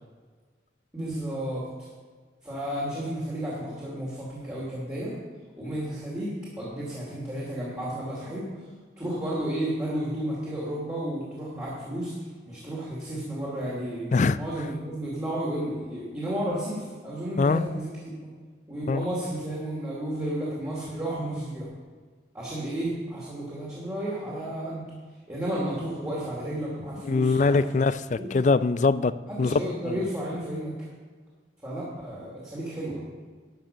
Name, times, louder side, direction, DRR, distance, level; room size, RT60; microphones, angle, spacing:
voice 1, 0.9-1.7 2.4-5.1 5.6-8.5 9.0-12.1 12.4-14.1 14.3-17.9 18.2-18.3 18.7-21.7 22.3-24.9 25.3-27.6 28.1-28.3 29.3-30.7 31.6-33.0, right 1 dB, 15° right, -8 dB, 2.7 m, -32 dB
voice 2, 27.0-29.1 29.4-29.6 29.9-30.0, left 4 dB, 40° left, 16 dB, 0.3 m, -22 dB
12.0 x 6.6 x 6.8 m, 1.5 s
head